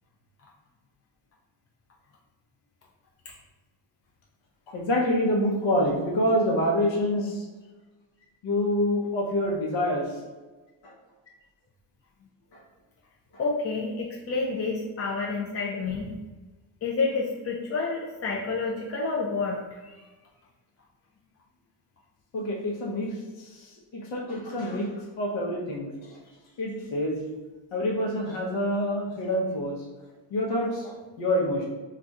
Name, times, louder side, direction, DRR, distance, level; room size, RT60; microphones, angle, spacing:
voice 1, 4.7-7.4 8.4-10.0 10.8-10.9 12.5-12.6 22.3-26.1 26.6-27.2 27.7-29.8 30.3-31.7, left 1 dB, 65° left, -2 dB, 0.8 m, -27 dB
voice 2, 13.4-16.2 16.8-19.6, left 4 dB, 30° left, -2 dB, 0.4 m, -29 dB
2.5 x 2.3 x 4.0 m, 1.2 s
cardioid pair, 70°, 50 cm